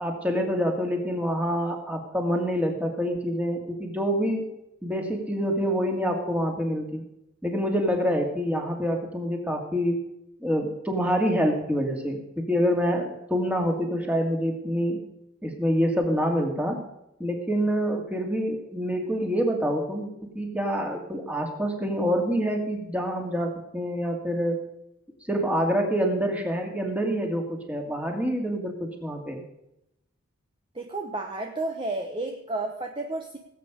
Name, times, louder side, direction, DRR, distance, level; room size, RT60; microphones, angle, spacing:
voice 1, 0.0-4.5 4.8-7.0 7.4-10.0 10.4-15.0 15.4-16.8 17.2-20.1 20.3-24.6 25.3-29.4, equal, 5° right, 2 dB, 2.3 m, -26 dB
voice 2, 30.7-33.4, right 2 dB, 20° right, 2 dB, 1.0 m, -31 dB
19.0 x 8.5 x 5.1 m, 0.85 s
head